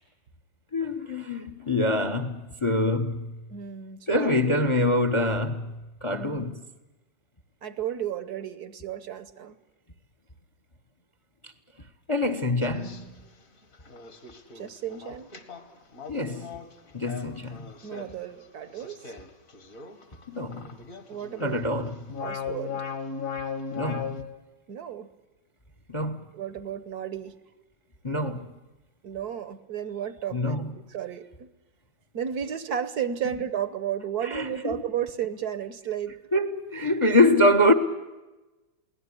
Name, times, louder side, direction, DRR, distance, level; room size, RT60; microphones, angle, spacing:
voice 1, 0.7-3.4 4.1-6.6 11.4-11.5 12.1-13.2 16.1-16.5 16.9-17.7 20.3-20.7 21.4-22.0 23.7-24.2 25.9-26.2 28.0-28.5 30.3-30.7 34.2-34.8 36.3-37.7, left 1 dB, 25° left, 0.8 m, -25 dB
voice 2, 3.5-4.6 6.1-6.4 7.6-9.5 14.5-15.3 17.8-19.0 21.1-21.6 22.2-22.8 24.7-25.1 26.3-27.4 29.0-30.6 30.9-31.5 32.1-36.2, right 9 dB, 60° right, 1.4 m, -33 dB
sound 1, 12.6-13.1 13.7-21.6 21.9-24.2, left 6 dB, 50° left, 2.1 m, -38 dB
22.5 x 17.5 x 9.9 m
omnidirectional pair, 2.0 m